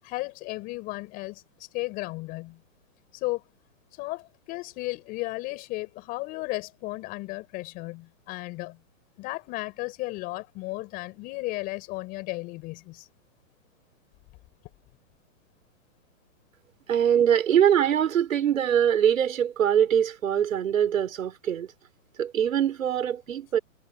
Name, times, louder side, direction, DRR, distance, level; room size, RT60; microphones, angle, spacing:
voice 1, 0.0-2.6 3.1-3.4 3.9-8.8 9.2-13.1, left 21 dB, 20° left, 7.7 m, -34 dB
voice 2, 16.9-21.7 22.2-23.6, right 9 dB, 75° right, 5.3 m, -23 dB
hypercardioid pair, 175°, 40 cm